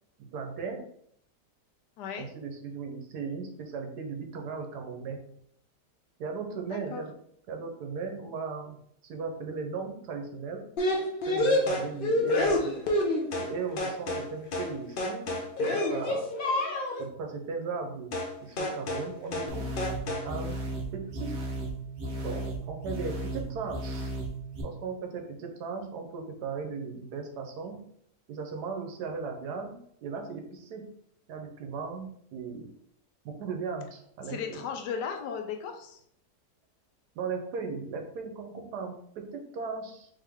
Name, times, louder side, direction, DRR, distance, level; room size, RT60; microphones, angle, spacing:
voice 1, 0.3-0.9 2.2-5.2 6.2-7.1 7.5-8.8 9.0-10.7 11.3-12.6 13.4-16.3 17.0-18.1 18.4-19.7 20.2-20.6 20.9-21.4 22.2-24.1 24.6-27.8 28.3-30.9 31.3-32.7 33.2-34.6 37.1-40.1, right 5 dB, 75° right, 4 dB, 1.3 m, -37 dB
voice 2, 2.0-2.3 6.7-7.0 34.3-36.0, left 6 dB, 90° left, 5 dB, 1.2 m, -36 dB
sound 1, 10.8-13.5 13.8-14.3 14.5-14.7 15.0-17.1 18.1-18.3 18.6-19.1 19.3-19.5 19.8-20.3, left 1 dB, 60° left, 0.5 m, -28 dB
sound 2, 19.5-24.6, right 1 dB, 50° right, 1.0 m, -35 dB
3.7 x 3.2 x 3.5 m, 0.67 s
omnidirectional pair, 1.8 m